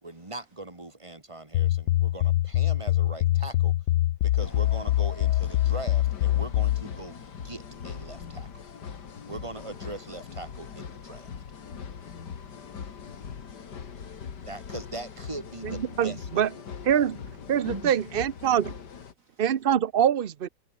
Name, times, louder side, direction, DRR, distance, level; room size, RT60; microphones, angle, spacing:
voice 1, 0.0-3.7 4.2-8.6 9.3-11.4 14.5-16.4 17.6-17.9, right 2 dB, 15° right, 2.7 m, -40 dB
sound 1, 1.5-6.8, left 14 dB, 80° left, 1.4 m, -24 dB
sound 2, 4.4-19.1, left 7 dB, 65° left, 2.4 m, -41 dB
voice 2, 11.9-13.3 14.0-14.4 19.3-19.4, right 5 dB, 50° right, 1.5 m, -66 dB
voice 3, 15.6-16.5 16.9-17.2 17.5-18.8 19.4-20.5, right 9 dB, 75° right, 0.5 m, -24 dB
omnidirectional pair, 2.0 m